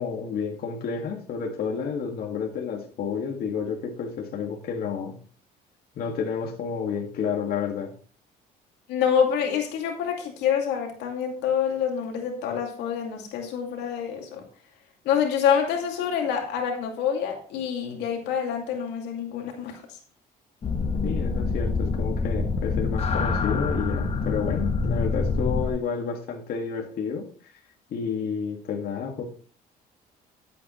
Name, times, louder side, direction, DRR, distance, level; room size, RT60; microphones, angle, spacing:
voice 1, 0.0-5.1 6.0-7.9 21.0-27.3 27.9-29.2, left 6 dB, 65° left, 1 dB, 2.1 m, -30 dB
voice 2, 8.9-14.4 15.1-19.8, left 8 dB, 85° left, 2 dB, 2.4 m, -26 dB
sound 1, 20.6-25.7, left 4 dB, 35° left, 1.5 m, -26 dB
13.0 x 8.4 x 3.2 m, 0.42 s
cardioid pair, 110°, 17 cm